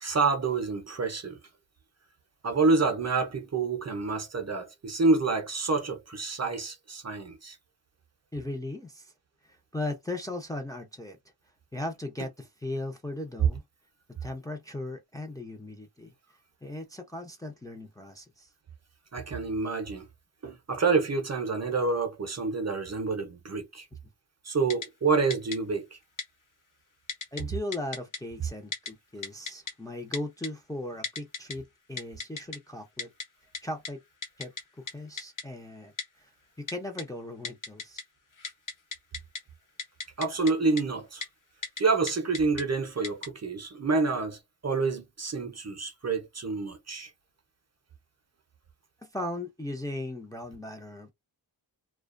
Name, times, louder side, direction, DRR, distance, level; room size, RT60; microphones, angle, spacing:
voice 1, 0.0-1.4 2.4-7.6 19.1-20.1 20.4-23.9 24.4-26.0 40.2-41.2 41.8-47.1, right 4 dB, 35° right, 0.6 m, -28 dB
voice 2, 8.3-9.1 9.4-11.2 11.7-13.6 14.2-16.1 16.6-18.5 27.3-33.1 33.6-34.0 34.4-34.5 34.9-35.9 36.2-36.3 36.6-38.0 49.0-51.1, left 1 dB, 10° left, 0.5 m, -37 dB
Typing, 24.7-24.9 25.3-25.6 26.2-26.3 27.1-27.4 27.7-28.2 28.7-28.9 29.2-29.7 30.1-30.5 31.0-31.5 32.0-32.6 33.0-33.2 33.5-33.6 33.8-33.9 34.2-34.6 34.9-35.0 35.2-35.4 36.0-36.1 36.7-37.0 37.4-38.0 38.3-39.4 39.8-40.5 40.8-40.9 41.2-41.3 41.6-41.8 42.1-42.6 43.0-43.3, left 4 dB, 45° left, 0.8 m, -35 dB
2.3 x 2.2 x 2.4 m
wide cardioid pair, 95°, 44 cm